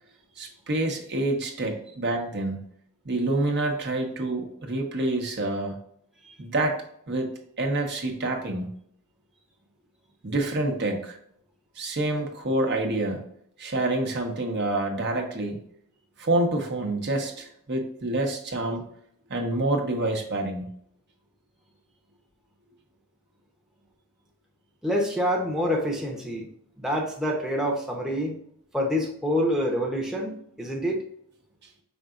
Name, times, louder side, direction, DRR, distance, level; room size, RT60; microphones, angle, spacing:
voice 1, 0.4-2.6 3.0-5.8 6.4-6.8 7.1-7.3 7.6-8.7 10.2-11.2 11.8-13.2 13.6-15.6 16.2-18.9 19.3-20.6, right 2 dB, 50° right, 3 dB, 0.9 m, -27 dB
voice 2, 24.8-26.5 26.8-28.4 28.7-31.0, equal, ahead, -2 dB, 0.8 m, -27 dB
5.4 x 3.8 x 2.4 m, 0.67 s
head